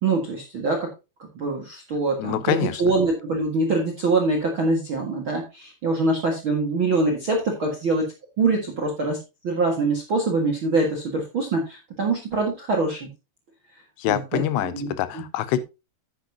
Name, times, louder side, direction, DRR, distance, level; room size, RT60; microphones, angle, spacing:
voice 1, 0.0-0.9 1.3-8.1 8.4-9.2 9.4-13.1 14.1-14.9, right 3 dB, 50° right, 1.5 m, -24 dB
voice 2, 2.2-2.8 14.0-15.6, left 12 dB, 80° left, 2.7 m, -25 dB
10.0 x 9.5 x 2.8 m
omnidirectional pair, 5.1 m